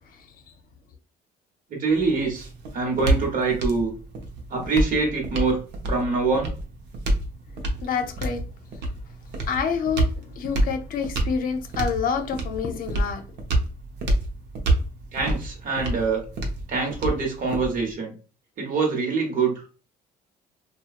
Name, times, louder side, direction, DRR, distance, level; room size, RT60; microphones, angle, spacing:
voice 1, 1.7-2.5 2.7-3.9 4.5-5.6 5.9-6.5 15.1-16.2 16.7-18.1 18.6-19.6, right 4 dB, 55° right, 1.2 m, -24 dB
sound 1, 1.9-17.9, right 1 dB, 85° right, 0.7 m, -28 dB
voice 2, 7.8-8.4 9.5-13.2, left 6 dB, 55° left, 0.6 m, -27 dB
3.0 x 2.3 x 2.4 m
cardioid pair, 110°, 17 cm